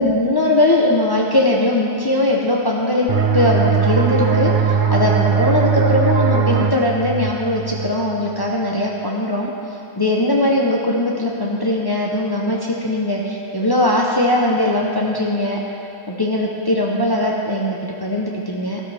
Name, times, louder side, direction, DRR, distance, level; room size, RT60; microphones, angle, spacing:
voice 1, 0.0-3.1 3.3-9.5 10.0-15.6 16.1-18.8, left 1 dB, 25° left, -3 dB, 1.0 m, -20 dB
sound 1, 3.1-8.5, right 6 dB, 55° right, 0.9 m, -19 dB
13.5 x 13.0 x 3.5 m, 2.7 s
omnidirectional pair, 1.0 m